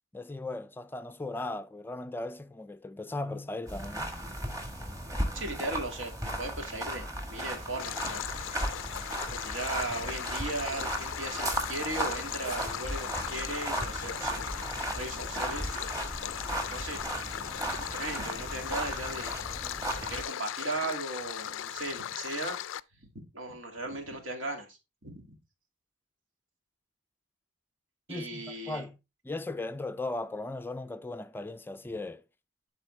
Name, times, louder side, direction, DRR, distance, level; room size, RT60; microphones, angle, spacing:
voice 1, 0.1-4.1 28.1-29.0 29.2-32.2, left 2 dB, 10° left, 0.4 m, -37 dB
sound 1, 3.7-20.2, right 1 dB, 20° right, 1.4 m, -36 dB
voice 2, 5.3-6.1 6.4-8.5 9.4-14.5 14.8-15.8 16.1-16.3 16.7-17.2 17.6-19.4 20.1-22.6 23.0-25.2 28.1-28.9, right 2 dB, 90° right, 2.2 m, -37 dB
Stream, 7.8-22.8, left 10 dB, 80° left, 0.4 m, -38 dB
11.5 x 4.1 x 3.2 m
head